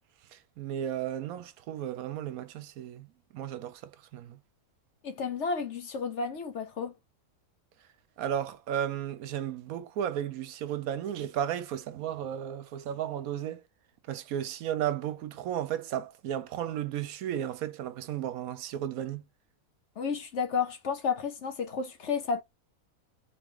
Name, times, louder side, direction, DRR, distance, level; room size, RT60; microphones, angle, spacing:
voice 1, 0.3-3.1 3.3-3.8 4.1-4.4 8.2-13.6 14.1-19.2, right 10 dB, 80° right, 1.0 m, -34 dB
voice 2, 5.0-6.9 20.0-22.4, left 5 dB, 55° left, 1.1 m, -32 dB
3.9 x 3.0 x 3.7 m
omnidirectional pair, 1.5 m